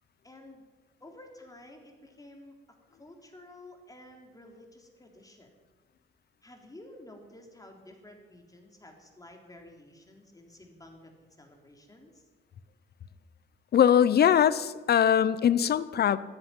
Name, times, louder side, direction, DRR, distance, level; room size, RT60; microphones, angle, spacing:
voice 1, 0.2-0.6 1.0-2.5 2.9-5.5 6.4-12.2, left 1 dB, 15° left, 2 dB, 3.6 m, -51 dB
voice 2, 13.7-16.2, left 9 dB, 55° left, 16 dB, 0.8 m, -22 dB
14.0 x 10.0 x 9.9 m, 1.3 s
cardioid pair, 90°, 20 cm